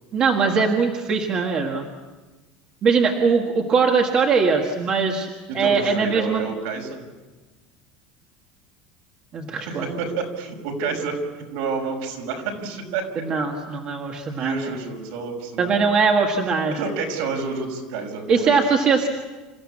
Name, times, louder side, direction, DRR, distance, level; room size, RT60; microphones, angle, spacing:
voice 1, 0.1-1.9 2.8-5.3 5.5-6.5 9.3-9.9 13.1-14.6 15.6-16.9 18.3-19.1, right 5 dB, 25° right, 1 dB, 1.7 m, -21 dB
voice 2, 5.5-7.0 9.6-13.2 14.4-15.9 16.7-18.6, right 4 dB, 70° right, 2 dB, 6.0 m, -29 dB
28.5 x 15.0 x 8.7 m, 1.2 s
cardioid pair, 175°, 4 cm